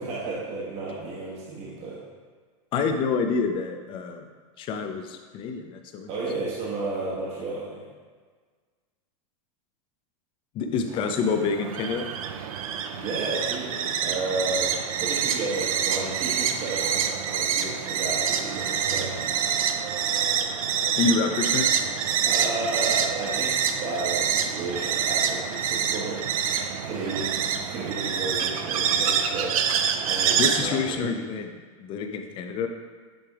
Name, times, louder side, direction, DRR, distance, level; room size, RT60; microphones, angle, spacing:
voice 1, 0.0-2.0 6.1-7.8 12.9-14.7 15.0-19.1 22.2-29.6 30.0-31.1, right 3 dB, 40° right, -7 dB, 1.3 m, -32 dB
voice 2, 2.7-4.2 4.6-6.1 10.5-12.1 21.0-21.7 30.4-32.7, left 5 dB, 30° left, 6 dB, 0.5 m, -27 dB
sound 1, 10.9-30.6, right 7 dB, 85° right, 0.5 m, -26 dB
8.6 x 3.3 x 3.5 m, 1.5 s
supercardioid pair, 145°, 18 cm